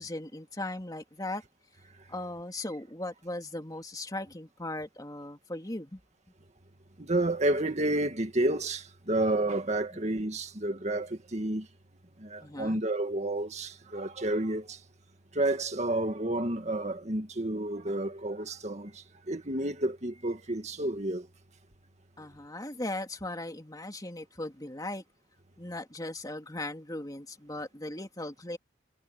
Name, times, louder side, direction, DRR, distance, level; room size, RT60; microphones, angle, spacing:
voice 1, 0.0-1.4 2.1-6.0 12.4-12.8 22.2-25.0 25.6-28.6, left 1 dB, 20° left, 2.9 m, -38 dB
voice 2, 7.0-11.7 12.2-14.8 15.3-21.3, right 1 dB, 35° right, 2.0 m, -30 dB
head